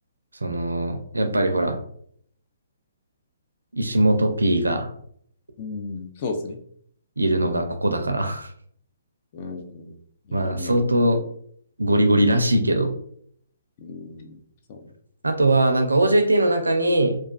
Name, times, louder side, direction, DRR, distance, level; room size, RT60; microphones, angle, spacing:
voice 1, 0.4-1.8 3.7-4.9 7.2-8.5 10.3-11.2 11.8-12.9 15.2-17.2, right 1 dB, 90° right, 6 dB, 0.4 m, -21 dB
voice 2, 5.6-6.6 9.3-10.0 10.3-10.8 13.8-14.4 14.7-14.9, left 3 dB, 40° left, 5 dB, 0.4 m, -34 dB
2.3 x 2.3 x 2.3 m, 0.64 s
figure-of-eight pair, 135°, 0 cm